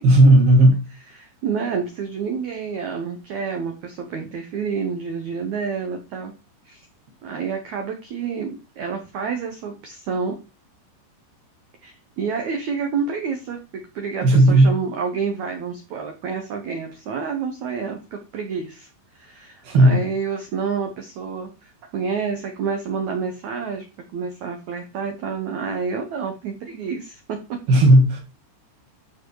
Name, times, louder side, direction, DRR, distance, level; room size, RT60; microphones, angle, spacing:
voice 1, 0.0-0.9 14.2-14.7 19.6-20.0 27.7-28.2, right 1 dB, 60° right, 3.9 m, -13 dB
voice 2, 1.2-6.3 6.6-6.8 7.2-10.4 11.8-18.9 19.1-23.8 24.1-27.2, right 5 dB, 90° right, 1.6 m, -29 dB
13.5 x 4.8 x 4.7 m
omnidirectional pair, 5.1 m